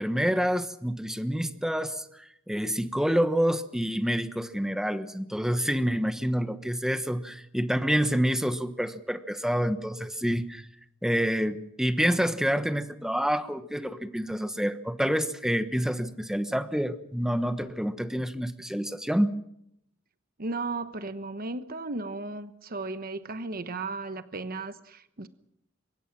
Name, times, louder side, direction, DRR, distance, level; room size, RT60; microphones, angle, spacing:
voice 1, 0.0-10.7 11.0-19.3, equal, 5° right, 10 dB, 1.2 m, -28 dB
voice 2, 20.4-25.3, right 3 dB, 45° right, 11 dB, 1.1 m, -35 dB
24.5 x 22.0 x 6.1 m, 0.76 s
head